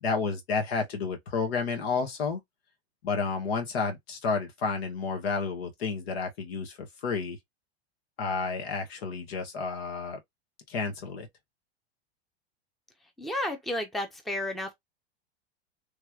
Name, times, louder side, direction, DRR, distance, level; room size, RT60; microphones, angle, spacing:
voice 1, 0.0-2.4 3.0-7.4 8.2-10.2 10.7-11.3, left 4 dB, 70° left, 1.5 m, -31 dB
voice 2, 13.2-14.7, left 1 dB, ahead, 0.7 m, -32 dB
3.3 x 3.0 x 2.3 m
hypercardioid pair, 110°, 32 cm